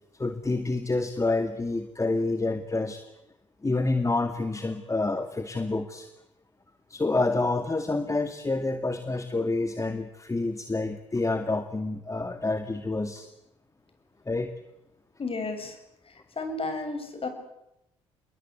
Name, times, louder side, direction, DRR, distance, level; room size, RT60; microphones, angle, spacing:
voice 1, 0.2-3.0 3.6-6.1 6.9-13.3 14.3-14.5, left 2 dB, 20° left, 8 dB, 2.3 m, -28 dB
voice 2, 15.2-15.8 16.4-17.3, left 3 dB, 35° left, 7 dB, 7.6 m, -32 dB
28.5 x 21.5 x 8.4 m, 0.86 s
hypercardioid pair, 50°, 15 cm